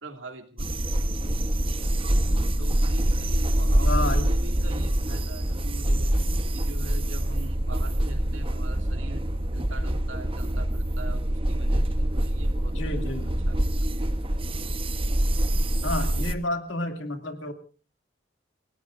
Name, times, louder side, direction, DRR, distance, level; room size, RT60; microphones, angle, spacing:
voice 1, 0.0-2.1 2.6-6.2 6.5-12.8 13.4-13.7, right 2 dB, 85° right, 6 dB, 2.4 m, -43 dB
sound 1, 0.6-16.4, right 1 dB, 30° right, 1.0 m, -25 dB
voice 2, 3.8-4.3 12.8-13.3 15.8-17.5, left 2 dB, 75° left, 6 dB, 2.4 m, -30 dB
30.0 x 17.5 x 2.5 m, 0.38 s
head